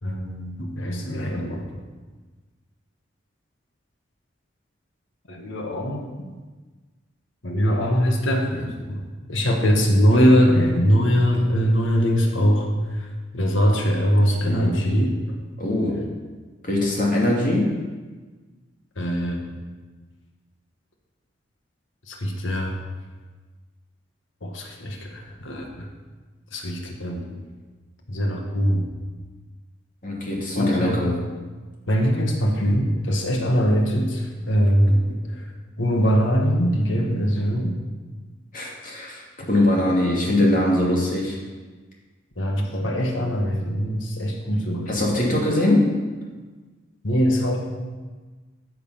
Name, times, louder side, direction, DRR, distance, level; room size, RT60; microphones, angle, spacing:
voice 1, 0.0-1.7 5.3-6.4 7.4-9.0 9.3-13.1 13.3-15.4 19.0-19.5 22.1-22.8 24.4-25.9 26.5-27.4 28.1-28.9 30.5-31.0 31.9-35.5 35.8-37.7 39.4-39.5 42.4-44.9 47.0-47.6, equal, 85° left, 2 dB, 1.5 m, -22 dB
voice 2, 15.6-16.0 16.6-17.7 30.0-31.1 38.5-39.2 39.5-41.4 44.9-45.9, left 1 dB, 45° left, -3 dB, 2.7 m, -21 dB
14.0 x 6.7 x 5.7 m, 1.4 s
head